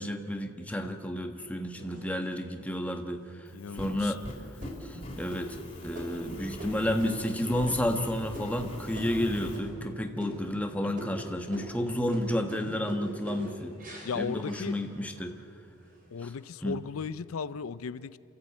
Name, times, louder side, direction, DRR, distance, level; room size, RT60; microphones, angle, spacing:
voice 1, 0.0-3.5 3.7-4.2 4.8-5.6 5.8-13.7 14.1-15.3 16.2-16.3 16.6-16.8, left 1 dB, 5° left, 4 dB, 1.2 m, -31 dB
sound 1, 1.8-2.6 3.2-3.3 3.8-4.1 4.6-9.9 10.2-10.7 10.9-15.3 15.7-16.3, equal, 40° right, 5.2 m, -42 dB
voice 2, 3.5-4.2 10.8-11.0 14.0-14.8 16.1-18.2, left 5 dB, 90° left, 16 dB, 0.5 m, -36 dB
Fire, 3.5-9.6, left 1 dB, 30° left, 3.8 m, -43 dB
27.5 x 14.0 x 8.4 m, 2.6 s
head